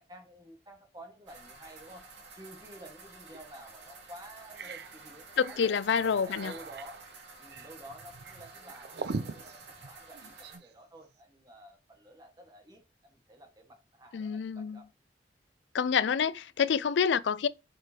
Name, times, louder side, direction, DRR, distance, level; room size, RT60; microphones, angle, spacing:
voice 1, 0.0-2.0 2.3-5.8 6.2-7.0 7.4-9.6 9.8-14.9, right 1 dB, 20° right, 1.6 m, -51 dB
sound 1, 1.3-10.6, right 3 dB, 90° right, 2.7 m, -51 dB
sound 2, 3.3-3.4 3.9-4.0 4.3-10.7, right 4 dB, 70° right, 0.6 m, -42 dB
voice 2, 5.4-6.5 14.1-14.8 15.7-17.5, left 6 dB, 85° left, 0.4 m, -27 dB
7.7 x 5.0 x 2.9 m
head